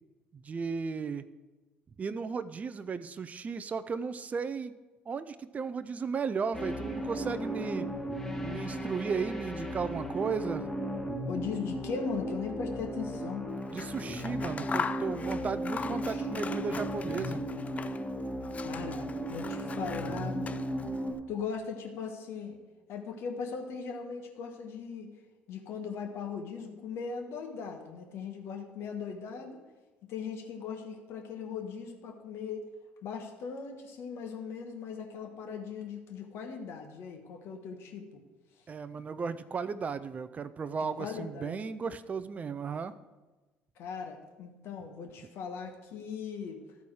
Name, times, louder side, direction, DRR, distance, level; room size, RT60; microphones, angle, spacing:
voice 1, 0.3-1.3 2.0-4.8 5.1-7.9 8.4-10.7 13.7-17.4 38.7-43.0, right 5 dB, 35° right, 12 dB, 0.4 m, -35 dB
sound 1, 6.5-21.1, equal, 10° left, 1.3 m, -36 dB
voice 2, 11.3-13.5 16.1-16.8 18.6-20.5 21.3-22.6 22.9-25.1 25.5-29.6 30.1-32.6 33.0-38.2 41.0-41.6 43.8-46.6, left 6 dB, 65° left, 4 dB, 1.3 m, -39 dB
Scissors, 13.6-18.1 18.4-21.0, left 5 dB, 30° left, 0.4 m, -40 dB
12.5 x 4.2 x 4.8 m, 1.2 s
hypercardioid pair, 65°, 5 cm